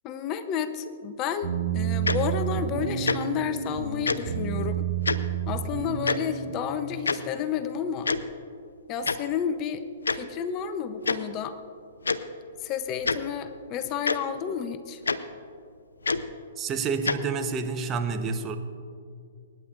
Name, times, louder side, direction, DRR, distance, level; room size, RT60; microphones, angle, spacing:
voice 1, 0.0-4.9 5.5-8.1 8.9-9.8 10.1-11.6 12.6-15.0, left 8 dB, 30° left, 11 dB, 0.6 m, -31 dB
sound 1, 1.4-6.6, right 9 dB, 50° right, 2.0 m, -30 dB
Tick-tock, 2.0-2.2 3.0-3.2 4.0-4.2 5.0-5.2 6.0-6.2 7.1-7.2 8.0-8.2 9.0-9.2 10.0-10.2 11.0-11.2 12.0-12.2 13.0-13.2 14.0-14.2 15.0-15.2 16.0-16.2 17.0-17.2, left 4 dB, 85° left, 0.5 m, -25 dB
voice 2, 16.6-18.6, right 5 dB, 25° right, 7 dB, 0.9 m, -29 dB
25.0 x 10.0 x 2.5 m, 2.4 s
hypercardioid pair, 120°, 0 cm